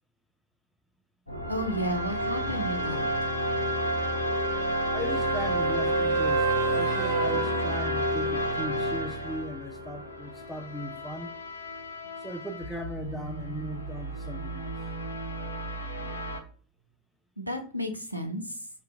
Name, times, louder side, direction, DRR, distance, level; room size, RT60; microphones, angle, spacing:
sound 1, 1.3-16.4, equal, 80° left, 0.5 m, -31 dB
voice 1, 1.5-3.1 17.4-18.7, equal, 90° right, 0.5 m, -32 dB
sound 2, 2.9-8.6 12.7-12.8, right 4 dB, 45° right, 0.6 m, -31 dB
voice 2, 4.9-11.3 12.2-14.7, equal, ahead, 0.3 m, -38 dB
2.7 x 2.3 x 3.4 m
figure-of-eight pair, 90°, 0 cm